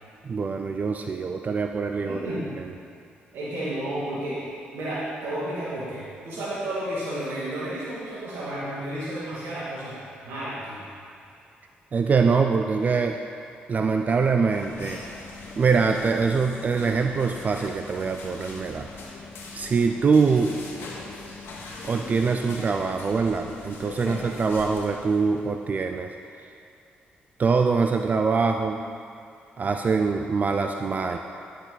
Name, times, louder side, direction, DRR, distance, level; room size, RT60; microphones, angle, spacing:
voice 1, 0.2-2.7 11.9-13.2 13.7-15.0 15.6-18.9 19.5-20.6 21.8-26.5 27.4-28.8 29.6-31.2, right 5 dB, 40° right, 5 dB, 0.4 m, -24 dB
voice 2, 2.0-2.4 3.3-4.4 4.7-9.9 10.2-10.8 24.0-24.2, right 1 dB, 80° right, -9 dB, 2.2 m, -32 dB
sound 1, 14.5-25.6, left 3 dB, 70° left, 1.5 m, -41 dB
11.5 x 6.3 x 4.1 m, 2.4 s
cardioid pair, 75°, 4 cm